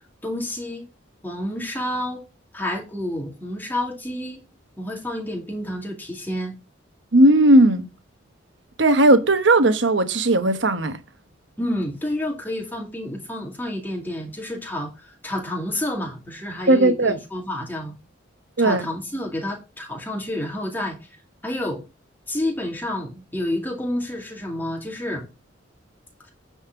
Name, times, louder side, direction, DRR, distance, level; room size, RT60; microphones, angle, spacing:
voice 1, 0.2-0.9 1.2-2.2 2.5-4.4 4.8-6.6 11.6-17.9 18.6-21.0 21.4-21.8 22.3-25.3, left 1 dB, 10° left, 2.3 m, -29 dB
voice 2, 7.1-7.8 8.8-11.0 16.7-17.1 18.6-18.9, right 1 dB, 70° right, 1.1 m, -16 dB
9.5 x 4.3 x 5.9 m
head